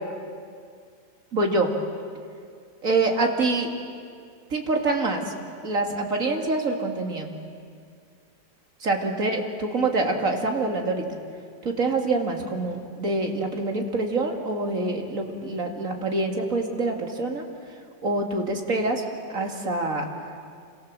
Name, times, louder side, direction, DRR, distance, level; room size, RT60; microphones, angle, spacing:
voice 1, 1.3-1.7 2.8-3.7 4.5-5.2 5.6-7.3 8.8-11.1 11.6-17.5 18.0-19.0 19.3-20.1, right 2 dB, 45° right, 3 dB, 2.8 m, -25 dB
29.5 x 26.0 x 7.7 m, 2.2 s
omnidirectional pair, 2.0 m